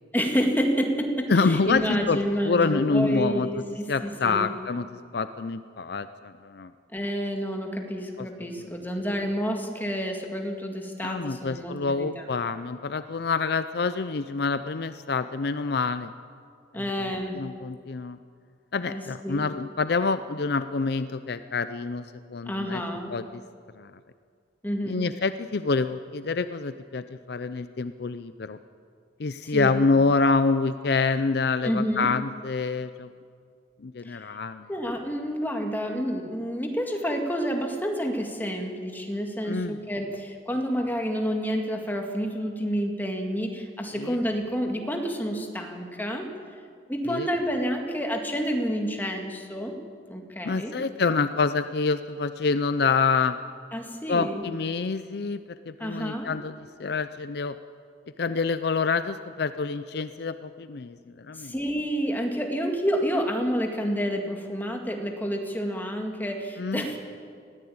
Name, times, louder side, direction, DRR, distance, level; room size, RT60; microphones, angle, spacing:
voice 1, 0.1-4.5 6.9-12.2 16.7-17.4 18.9-19.5 22.5-23.2 24.6-25.1 29.4-29.8 31.6-32.2 34.1-34.2 34.7-46.3 46.9-49.8 50.1-50.8 53.7-54.4 55.8-56.3 61.4-67.0, equal, 10° left, 3 dB, 2.0 m, -29 dB
voice 2, 1.3-2.2 2.4-6.7 8.2-8.7 11.0-16.1 16.7-18.2 18.7-22.8 23.1-23.4 23.8-23.9 24.9-28.6 29.2-33.1 33.8-34.7 39.5-39.8 43.9-44.2 47.1-47.3 50.4-53.4 54.1-55.4 55.7-56.5 56.8-57.5 58.2-61.0 61.3-61.5 66.6-66.8, left 4 dB, 60° left, 12 dB, 0.5 m, -27 dB
20.5 x 14.5 x 8.7 m, 2.2 s
head